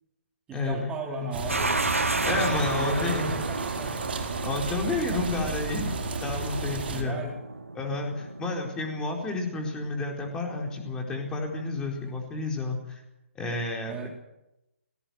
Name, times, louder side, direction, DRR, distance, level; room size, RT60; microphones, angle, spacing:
voice 1, 0.5-4.0 6.9-7.4 13.9-14.1, right 3 dB, 10° right, 2 dB, 3.9 m, -37 dB
sound 1, 1.3-7.0, right 4 dB, 50° right, 4.9 m, -33 dB
sound 2, 1.5-12.2, right 3 dB, 75° right, 2.2 m, -34 dB
voice 2, 2.2-3.3 4.4-5.9 6.2-7.2 7.7-13.0 13.3-14.0, left 3 dB, 10° left, 1 dB, 4.4 m, -30 dB
19.0 x 18.5 x 7.9 m, 0.91 s
figure-of-eight pair, 135°, 7 cm